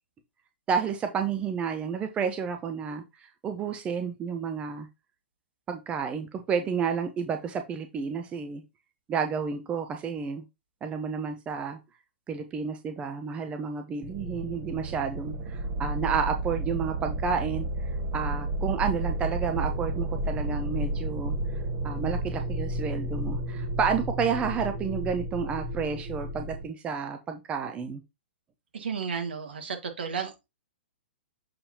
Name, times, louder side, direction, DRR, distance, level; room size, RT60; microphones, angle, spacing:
voice 1, 0.7-4.9 5.7-8.6 9.1-10.4 10.8-11.8 12.3-21.3 21.8-28.0, right 6 dB, 20° right, 0.7 m, -31 dB
sound 1, 14.0-26.6, right 1 dB, 40° right, 1.7 m, -32 dB
voice 2, 28.7-30.5, right 6 dB, 65° right, 1.7 m, -33 dB
6.8 x 5.5 x 2.8 m
figure-of-eight pair, 110°, 6 cm